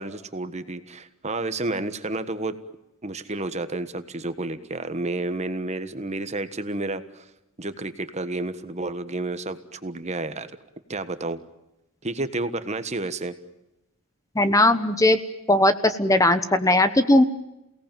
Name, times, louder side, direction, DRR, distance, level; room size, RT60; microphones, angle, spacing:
voice 1, 0.0-2.5 3.0-7.2 7.6-10.5 10.9-11.4 12.0-13.3, right 2 dB, 30° right, 11 dB, 1.4 m, -30 dB
voice 2, 14.3-15.2 15.5-17.2, left 1 dB, 15° left, 11 dB, 1.1 m, -18 dB
28.5 x 18.0 x 9.2 m, 0.94 s
head